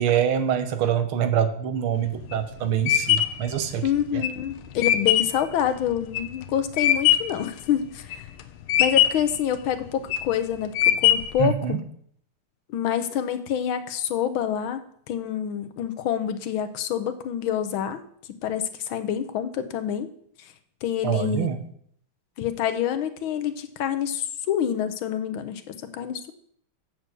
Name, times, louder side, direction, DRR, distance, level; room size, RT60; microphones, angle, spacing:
voice 1, 0.0-4.2 11.4-11.8 21.0-21.6, right 9 dB, 75° right, 10 dB, 1.9 m, -25 dB
sound 1, 2.0-7.4 7.9-8.4 8.7-9.4 9.9-10.3 10.8-11.5, left 11 dB, 90° left, 1.7 m, -21 dB
voice 2, 3.8-8.3 8.8-10.7 11.0-11.8 12.7-18.0 18.4-20.1 20.8-21.5 22.4-26.3, left 9 dB, 70° left, 10 dB, 1.6 m, -27 dB
8.6 x 6.8 x 6.8 m, 0.64 s
omnidirectional pair, 2.4 m